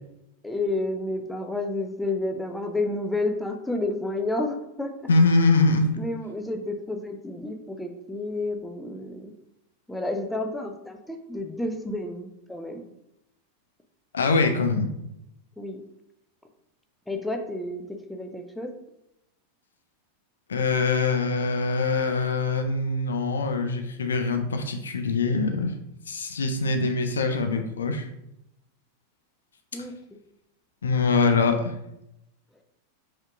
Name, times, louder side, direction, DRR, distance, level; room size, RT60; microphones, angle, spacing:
voice 1, 0.4-4.9 6.0-9.3 9.9-12.8 15.6-15.8 17.1-18.7 29.7-29.9, left 2 dB, 5° left, 4 dB, 0.5 m, -30 dB
voice 2, 5.1-5.9 14.1-14.9 20.5-25.7 26.1-28.1 30.8-31.7, left 3 dB, 70° left, 6 dB, 0.4 m, -23 dB
5.2 x 3.6 x 2.4 m, 0.84 s
figure-of-eight pair, 90°, 0 cm